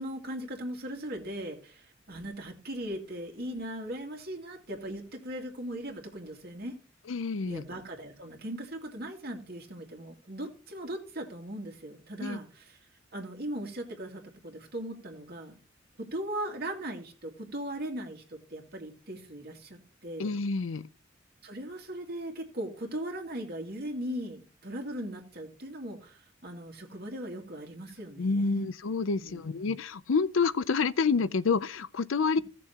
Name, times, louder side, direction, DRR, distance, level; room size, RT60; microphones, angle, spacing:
voice 1, 0.0-6.8 7.4-12.8 13.1-15.6 16.0-20.3 21.4-28.7 29.2-29.6, right 1 dB, 50° right, 2.3 m, -39 dB
voice 2, 7.1-7.6 12.2-12.4 20.2-20.9 28.2-32.4, left 4 dB, 75° left, 0.6 m, -28 dB
16.5 x 6.8 x 2.9 m
head